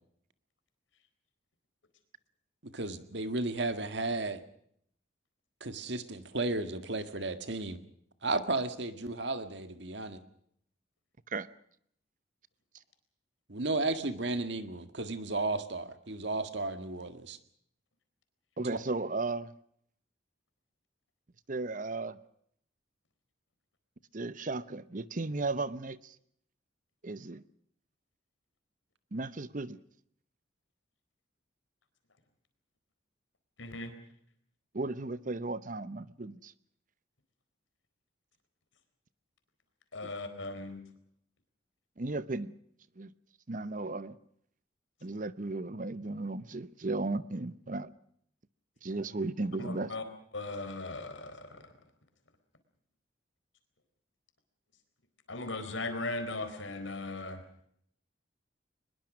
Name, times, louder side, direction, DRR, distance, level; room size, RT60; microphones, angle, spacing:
voice 1, 2.6-4.4 5.6-7.8 8.2-10.2 13.5-17.4, right 2 dB, 60° right, 9 dB, 1.9 m, -34 dB
voice 2, 18.6-19.5 21.5-22.2 24.1-26.2 27.0-27.4 29.1-29.8 34.7-36.5 40.0-40.1 42.0-42.5 43.0-43.1 43.5-44.2 45.0-47.9 48.8-49.9, right 3 dB, 40° right, 16 dB, 0.8 m, -35 dB
voice 3, 33.6-33.9 39.9-40.8 49.6-50.0 50.3-51.5 55.3-57.4, left 2 dB, 85° left, 9 dB, 4.2 m, -38 dB
23.0 x 21.5 x 6.3 m, 0.68 s
head